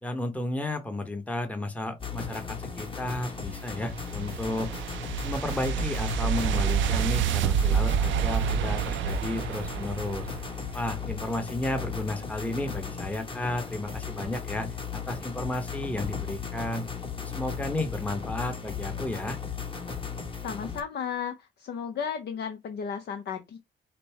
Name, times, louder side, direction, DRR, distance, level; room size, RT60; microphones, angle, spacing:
voice 1, 0.0-4.7 5.2-10.3 10.7-16.8 17.2-19.4, left 1 dB, 5° left, 0.9 m, -33 dB
sound 1, 2.0-20.8, left 6 dB, 25° left, 1.1 m, -36 dB
sound 2, 3.4-10.7, right 8 dB, 70° right, 0.4 m, -28 dB
voice 2, 20.4-23.6, left 7 dB, 55° left, 0.6 m, -34 dB
5.2 x 2.1 x 4.3 m
cardioid pair, 90°, 20 cm